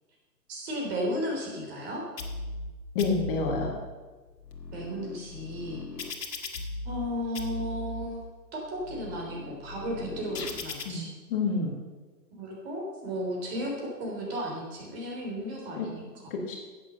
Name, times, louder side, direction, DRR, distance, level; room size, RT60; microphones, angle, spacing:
voice 1, 0.5-2.0 4.7-5.8 6.8-8.2 8.5-11.1 12.4-13.7 14.0-16.3, equal, 35° right, -1 dB, 3.7 m, -34 dB
sound 1, 2.2-2.7 3.0-3.7 4.3-7.1 7.4-8.1 8.6-10.8, left 2 dB, 70° left, 1.9 m, -38 dB
voice 2, 3.0-3.7 10.9-11.0 11.3-11.7 15.8-15.9 16.3-16.6, left 4 dB, 30° left, 1 dB, 1.8 m, -28 dB
10.5 x 8.6 x 6.7 m, 1.3 s
figure-of-eight pair, 130°, 50 cm